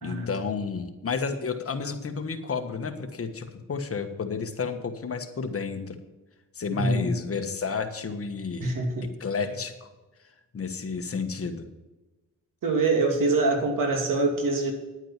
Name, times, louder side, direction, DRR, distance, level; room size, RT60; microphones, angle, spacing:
voice 1, 0.0-5.9 6.5-8.7 9.2-9.9 10.5-11.6, left 5 dB, 45° left, 7 dB, 1.5 m, -31 dB
voice 2, 6.7-7.1 8.6-9.1 12.6-14.7, right 3 dB, 75° right, 3 dB, 2.7 m, -24 dB
10.5 x 9.0 x 5.9 m, 1.1 s
cardioid pair, 95°, 33 cm